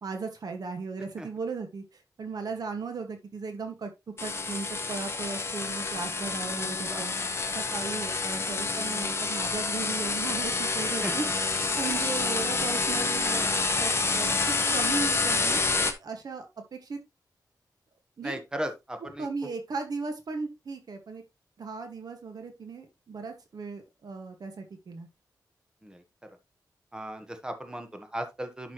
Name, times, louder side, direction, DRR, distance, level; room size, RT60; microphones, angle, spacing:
voice 1, 0.0-3.9 4.2-7.1 7.5-11.3 11.8-15.7 16.0-17.0 18.2-18.4 19.2-21.2 21.6-25.1, right 4 dB, 65° right, 5 dB, 1.7 m, -36 dB
sound 1, 4.2-15.9, left 3 dB, 35° left, 1.3 m, -28 dB
voice 2, 18.2-19.3 25.8-26.0 26.9-28.7, right 1 dB, 10° right, 6 dB, 1.3 m, -36 dB
11.5 x 6.0 x 3.1 m, 0.23 s
wide cardioid pair, 165°, 7 cm